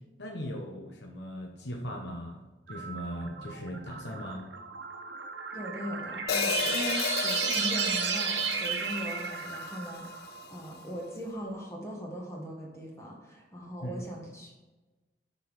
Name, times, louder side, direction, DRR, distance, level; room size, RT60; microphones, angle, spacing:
voice 1, 0.2-2.4 2.7-4.5 13.8-14.1, equal, 80° left, 1 dB, 1.0 m, -38 dB
sound 1, 2.7-10.8, right 6 dB, 90° right, 0.9 m, -33 dB
voice 2, 5.5-14.6, equal, 15° left, -2 dB, 1.5 m, -39 dB
Hi-hat, 6.3-10.5, left 8 dB, 60° left, 0.3 m, -34 dB
6.1 x 5.5 x 4.7 m, 1.2 s
head